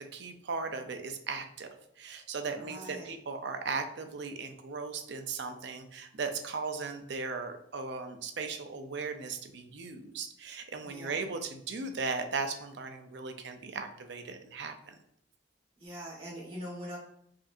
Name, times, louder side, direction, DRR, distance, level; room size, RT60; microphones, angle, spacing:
voice 1, 0.1-1.7 2.0-14.9, right 4 dB, 60° right, 6 dB, 0.5 m, -37 dB
voice 2, 2.6-3.1 10.8-11.2 15.8-17.0, equal, 30° right, -5 dB, 1.5 m, -42 dB
5.0 x 2.7 x 2.5 m, 0.71 s
head